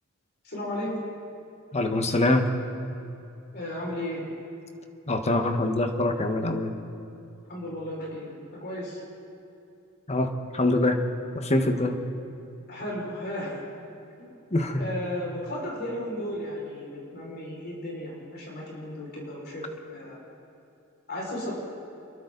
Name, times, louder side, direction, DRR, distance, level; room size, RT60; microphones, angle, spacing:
voice 1, 0.4-1.0 3.5-4.2 7.5-9.0 12.7-13.6 14.2-14.3 14.7-20.2 21.1-21.5, left 1 dB, 50° left, -4 dB, 6.0 m, -34 dB
voice 2, 1.7-2.5 5.1-6.7 10.1-11.0 11.3-12.0 14.5-14.8, left 1 dB, 30° left, 5 dB, 1.6 m, -24 dB
28.0 x 22.5 x 4.1 m, 2.7 s
head